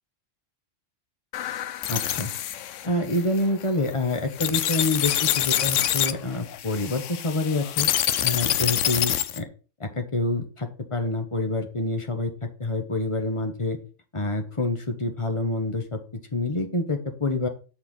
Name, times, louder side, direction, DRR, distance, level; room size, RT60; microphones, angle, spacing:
sound 1, 1.3-9.4, left 11 dB, 80° left, 1.0 m, -26 dB
voice 1, 1.9-2.3 2.8-7.9 8.2-9.5 9.8-12.3 12.6-13.8 14.1-16.0 16.3-17.5, left 2 dB, 25° left, 6 dB, 1.3 m, -27 dB
8.6 x 4.4 x 5.6 m, 0.35 s
omnidirectional pair, 1.3 m